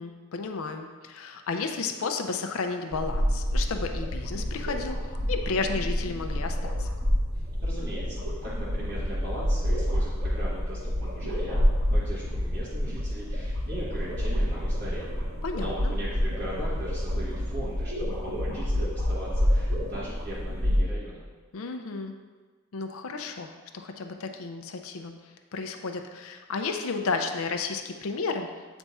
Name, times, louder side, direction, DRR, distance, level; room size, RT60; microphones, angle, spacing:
voice 1, 0.0-5.0 5.3-6.9 15.4-15.9 21.5-22.1 22.7-25.1 25.5-28.5, left 4 dB, 70° left, 5 dB, 0.5 m, -32 dB
sound 1, 2.9-20.8, equal, 90° right, 1.5 m, -28 dB
voice 2, 7.6-11.6 11.9-15.3 15.6-21.2, right 1 dB, 45° right, -11 dB, 1.4 m, -39 dB
8.2 x 3.5 x 4.1 m, 1.4 s
head